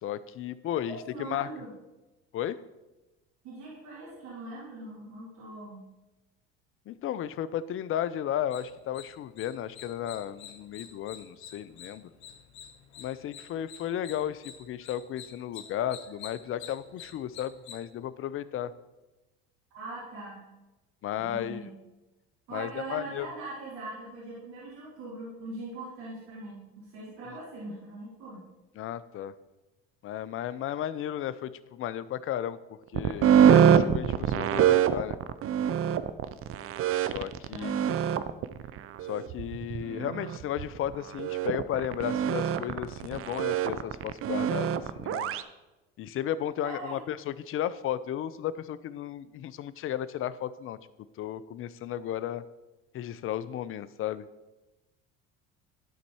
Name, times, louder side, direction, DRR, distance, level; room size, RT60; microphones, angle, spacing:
voice 1, 0.0-1.5 2.3-2.6 6.9-12.1 13.0-18.7 21.0-21.7 22.5-23.3 27.3-27.4 28.8-29.3 30.0-32.6 32.9-35.2 37.0-37.8 39.0-45.3 46.0-50.8 51.2-52.4 52.9-54.2, left 11 dB, 45° left, 16 dB, 0.5 m, -34 dB
voice 2, 1.1-1.7 3.4-5.9 19.7-20.4 21.2-21.7 22.5-28.4 37.5-37.9 46.6-47.0, right 2 dB, 60° right, -8 dB, 2.8 m, -41 dB
sound 1, 8.5-17.8, left 8 dB, 90° left, 0.8 m, -49 dB
sound 2, 32.9-45.4, right 9 dB, 45° right, 0.5 m, -24 dB
12.0 x 4.0 x 4.7 m, 1.1 s
hypercardioid pair, 75°, 32 cm